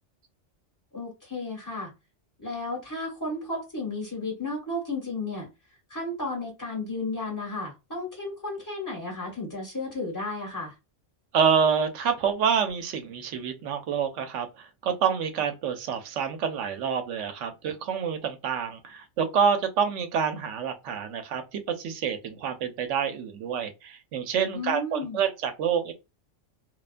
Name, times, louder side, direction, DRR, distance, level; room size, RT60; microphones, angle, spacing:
voice 1, 0.9-1.9 2.4-5.5 5.9-10.7 24.5-25.2, left 2 dB, 15° left, 1.0 m, -33 dB
voice 2, 11.3-25.9, right 7 dB, 80° right, 0.9 m, -27 dB
2.3 x 2.1 x 2.4 m
omnidirectional pair, 1.2 m